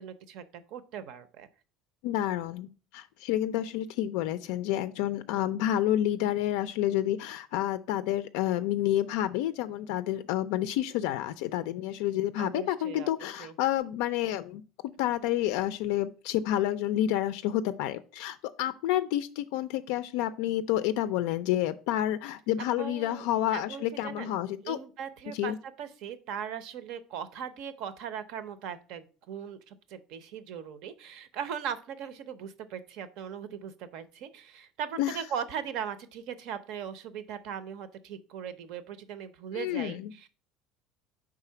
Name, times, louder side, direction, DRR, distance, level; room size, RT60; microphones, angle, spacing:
voice 1, 0.0-1.5 12.4-13.1 13.4-13.5 22.6-23.3 23.5-24.4 24.6-40.3, right 8 dB, 55° right, 13 dB, 0.6 m, -39 dB
voice 2, 2.0-14.6 15.0-24.8 25.4-25.6 35.0-35.2 39.5-40.1, left 12 dB, 80° left, 11 dB, 0.3 m, -29 dB
4.9 x 3.7 x 5.6 m, 0.37 s
cardioid pair, 170°, 0 cm